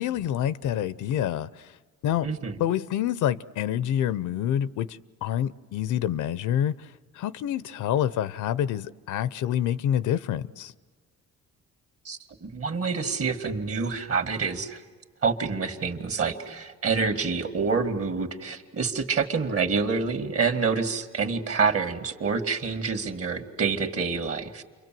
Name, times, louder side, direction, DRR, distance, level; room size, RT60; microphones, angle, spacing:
voice 1, 0.0-1.8 2.0-2.3 2.6-10.7, left 10 dB, 80° left, 0.7 m, -27 dB
voice 2, 2.2-2.6 12.0-14.8 15.2-24.6, right 5 dB, 50° right, 2.1 m, -27 dB
29.0 x 23.5 x 7.6 m
cardioid pair, 90°, 30 cm